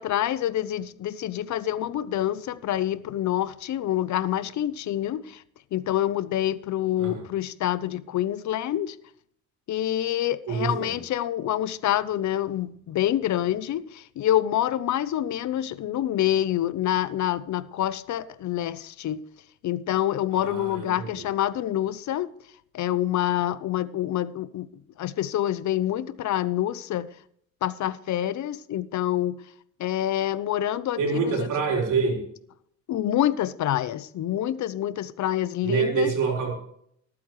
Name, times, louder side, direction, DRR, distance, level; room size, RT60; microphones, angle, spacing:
voice 1, 0.0-5.4 5.7-9.0 9.7-19.2 19.6-22.3 22.7-24.7 25.0-27.1 27.6-29.4 29.8-31.5 32.9-36.1, left 12 dB, 70° left, 0.7 m, -27 dB
voice 2, 10.5-10.9 20.3-21.1 31.0-32.2 35.6-36.5, right 5 dB, 85° right, 4.0 m, -26 dB
20.0 x 8.7 x 3.1 m
cardioid pair, 90°, 30 cm